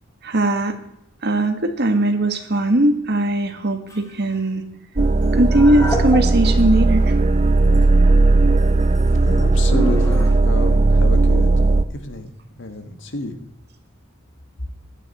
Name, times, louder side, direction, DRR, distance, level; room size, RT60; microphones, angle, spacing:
voice 1, 0.2-0.8 1.2-4.6 5.3-7.1, right 1 dB, 55° right, 7 dB, 1.6 m, -19 dB
sound 1, 3.9-4.2 5.2-6.6 7.0-7.1 7.6-7.8 8.6-10.3, left 1 dB, 15° left, 2.1 m, -30 dB
sound 2, 5.0-11.8, right 2 dB, 35° right, 0.6 m, -16 dB
voice 2, 9.2-11.5 11.9-13.4, left 2 dB, 65° left, 7 dB, 1.7 m, -30 dB
16.0 x 12.0 x 4.3 m, 0.79 s
head